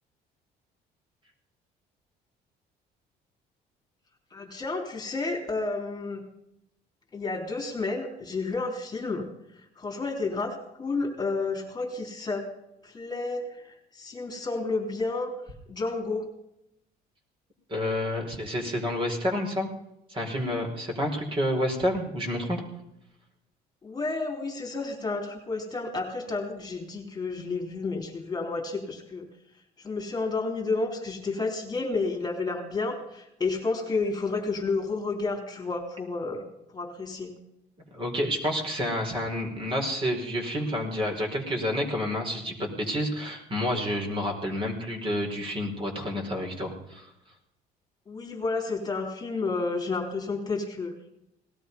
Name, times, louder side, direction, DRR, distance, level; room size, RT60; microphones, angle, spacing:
voice 1, 4.3-6.2 7.1-9.3 9.8-12.5 12.8-15.3 15.7-16.3 23.8-29.3 29.8-36.5 36.7-37.3 48.1-50.9, left 3 dB, 25° left, 1 dB, 3.6 m, -31 dB
voice 2, 17.7-19.7 20.1-22.6 37.9-47.1, left 1 dB, 30° right, 2 dB, 4.7 m, -29 dB
19.0 x 13.0 x 5.4 m, 0.81 s
cardioid pair, 110°, 17 cm